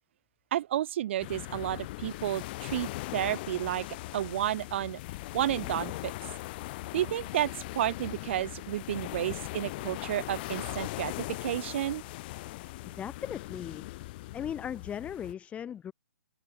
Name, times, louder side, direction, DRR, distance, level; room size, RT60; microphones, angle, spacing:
voice 1, 0.5-3.9 4.1-5.0 5.3-6.1 6.9-12.0, right 12 dB, 45° right, 0.4 m, -31 dB
sound 1, 1.2-15.3, left 20 dB, 35° left, 1.1 m, -40 dB
voice 2, 12.9-13.8 14.3-15.9, left 9 dB, 15° left, 3.0 m, -37 dB
open air
hypercardioid pair, 135°, 9 cm